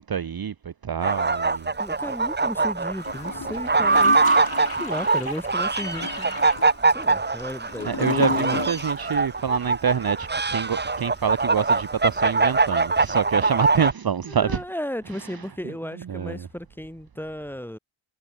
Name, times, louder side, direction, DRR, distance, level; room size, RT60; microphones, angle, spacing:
voice 1, 0.0-1.7 7.8-14.6 16.1-16.5, right 7 dB, 45° right, 1.0 m, -26 dB
sound 1, 1.0-13.9, right 4 dB, 20° right, 1.0 m, -23 dB
voice 2, 1.8-4.2 4.7-6.4 6.9-8.6 14.3-17.8, equal, 5° left, 6.3 m, -34 dB
Gurgling / Toilet flush, 3.0-9.1 9.3-9.4, left 6 dB, 45° left, 1.7 m, -34 dB
wide cardioid pair, 95°, 49 cm